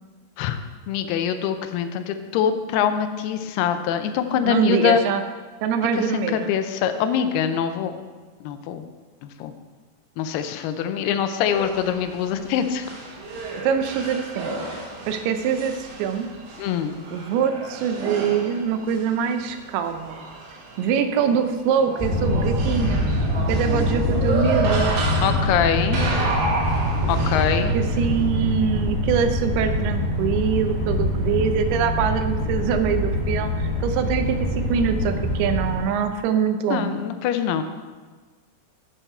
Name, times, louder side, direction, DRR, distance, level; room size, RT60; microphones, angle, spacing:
voice 1, 0.9-5.0 6.0-8.0 8.4-8.9 9.2-9.5 10.2-13.0 16.6-17.0 25.2-26.0 27.1-27.7 36.7-37.6, left 8 dB, 90° left, 8 dB, 2.7 m, -24 dB
voice 2, 4.4-5.2 5.6-6.5 13.6-14.5 15.1-16.3 17.1-20.2 20.8-24.9 27.7-34.4 34.7-37.0, right 7 dB, 85° right, 8 dB, 2.7 m, -24 dB
sound 1, 11.5-28.3, right 3 dB, 70° right, 2.8 m, -31 dB
sound 2, 22.0-35.8, left 1 dB, 15° left, 1.0 m, -24 dB
11.0 x 6.8 x 4.3 m, 1.4 s
omnidirectional pair, 4.4 m